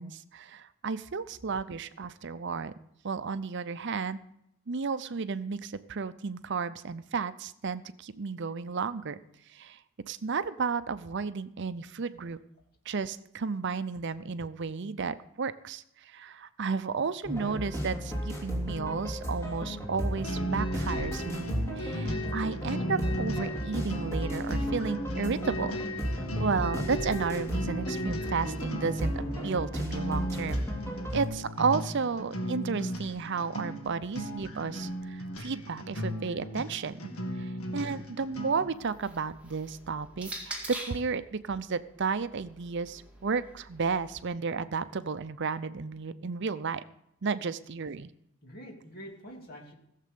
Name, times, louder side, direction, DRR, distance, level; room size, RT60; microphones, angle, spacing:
voice 1, 0.0-2.7 3.0-4.2 4.7-9.2 9.5-9.8 10.1-12.4 12.9-25.8 26.4-30.6 31.1-37.0 37.4-46.8 47.2-48.1, right 5 dB, 55° right, 13 dB, 0.6 m, -33 dB
sound 1, 17.2-31.3, equal, 10° left, 3.0 m, -34 dB
sound 2, 20.2-38.8, equal, 80° left, 1.9 m, -36 dB
sound 3, 38.7-41.1 42.1-44.2, right 2 dB, 5° right, 2.0 m, -44 dB
voice 2, 48.4-49.7, equal, 45° left, 0 dB, 2.8 m, -48 dB
16.0 x 7.5 x 6.8 m, 0.77 s
head